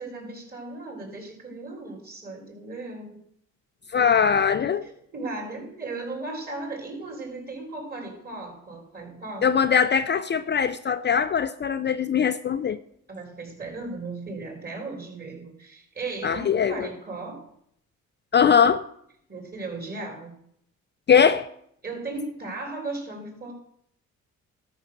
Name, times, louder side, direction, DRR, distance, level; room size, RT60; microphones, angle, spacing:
voice 1, 0.0-3.2 4.8-9.5 13.1-17.4 19.3-20.4 21.8-23.5, right 3 dB, 30° right, 4.8 m, -36 dB
voice 2, 3.9-4.9 9.4-12.8 16.2-16.9 18.3-18.8 21.1-21.5, left 7 dB, 35° left, 0.5 m, -21 dB
12.5 x 6.2 x 6.6 m
cardioid pair, 90°, 30 cm